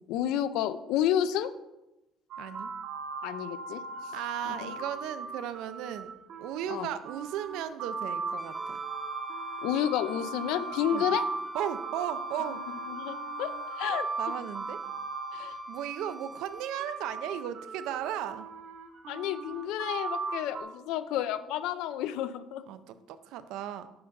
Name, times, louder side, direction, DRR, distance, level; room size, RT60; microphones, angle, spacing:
voice 1, 0.1-1.5 3.2-3.8 4.4-4.5 6.7-6.9 9.6-11.2 12.9-13.5 13.8-14.1 15.3-15.5 19.1-22.6, left 10 dB, 90° left, 13 dB, 0.3 m, -30 dB
sound 1, 2.3-16.1 16.8-20.6, right 3 dB, 70° right, 0.9 m, -38 dB
voice 2, 2.4-2.7 4.1-6.1 6.4-8.8 10.9-11.1 11.5-12.6 14.2-14.8 15.7-18.5 22.7-23.9, right 10 dB, 90° right, 12 dB, 0.3 m, -36 dB
Wind instrument woodwind instrument, 8.4-17.0, right 3 dB, ahead, 0.4 m, -43 dB
5.8 x 5.3 x 3.9 m, 0.96 s
cardioid pair, 135°, 0 cm